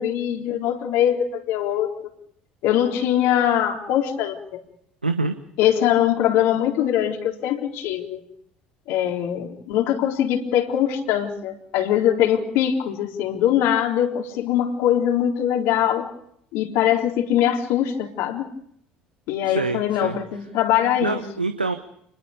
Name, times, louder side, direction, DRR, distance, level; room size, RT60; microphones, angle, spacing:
voice 1, 0.0-1.9 2.6-4.6 5.6-8.2 8.9-16.1 16.5-18.5 19.3-21.2, left 10 dB, 60° left, 2 dB, 3.9 m, -22 dB
voice 2, 5.0-5.4 19.4-20.2 21.0-21.7, right 3 dB, 90° right, 8 dB, 1.2 m, -25 dB
29.0 x 21.5 x 5.2 m, 0.70 s
figure-of-eight pair, 60°, 5 cm